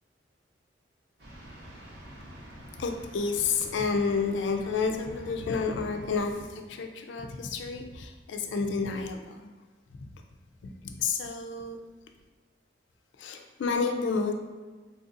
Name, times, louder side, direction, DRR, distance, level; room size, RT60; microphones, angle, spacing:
sound 1, 1.2-6.5, equal, 65° right, 0.8 m, -48 dB
voice 1, 2.8-9.5 10.0-10.1 10.8-11.8 13.2-14.3, left 4 dB, 80° left, 4 dB, 0.4 m, -30 dB
3.6 x 2.6 x 2.5 m, 1.4 s
head